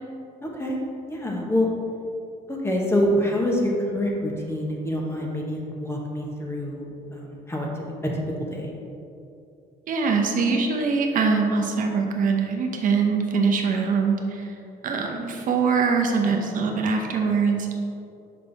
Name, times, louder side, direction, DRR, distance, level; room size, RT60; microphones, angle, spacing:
voice 1, 0.4-0.8 1.1-1.7 2.5-7.7 8.0-8.1 8.5-8.7, equal, 15° left, -1 dB, 1.1 m, -26 dB
voice 2, 9.9-14.4 14.8-17.8, right 5 dB, 55° right, 2 dB, 0.7 m, -23 dB
5.7 x 5.4 x 4.0 m, 2.7 s
cardioid pair, 110°, 17 cm